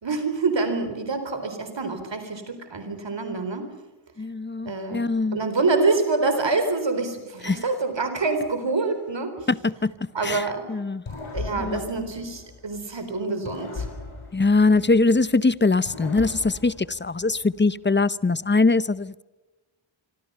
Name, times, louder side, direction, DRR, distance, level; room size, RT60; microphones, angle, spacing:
voice 1, 0.0-3.7 4.7-5.0 5.3-9.5 10.1-10.7 11.3-13.9, right 3 dB, 60° right, 7 dB, 4.2 m, -26 dB
voice 2, 4.2-5.4 7.4-7.6 9.5-9.9 10.2-10.4 10.7-11.0 11.6-11.8 14.3-19.2, left 3 dB, 20° left, 17 dB, 0.7 m, -22 dB
sound 1, 11.1-12.9 13.5-15.3 15.8-17.6, left 3 dB, 80° left, 7.2 m, -38 dB
26.5 x 25.5 x 5.7 m, 1.1 s
wide cardioid pair, 105°, 49 cm